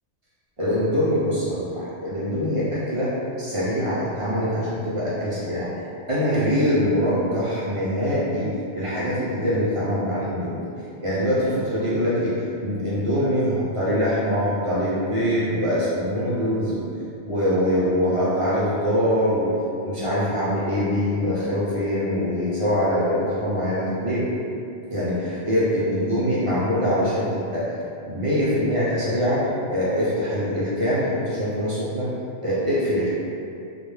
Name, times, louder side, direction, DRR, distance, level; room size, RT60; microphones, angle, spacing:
voice 1, 0.6-3.1 3.4-5.7 6.1-8.5 8.7-10.6 11.0-16.8 17.2-19.5 19.8-24.3 24.9-27.7 28.0-29.4 29.7-32.1 32.4-33.1, equal, 60° right, -9 dB, 0.3 m, -23 dB
2.1 x 2.1 x 3.1 m, 2.5 s
omnidirectional pair, 1.2 m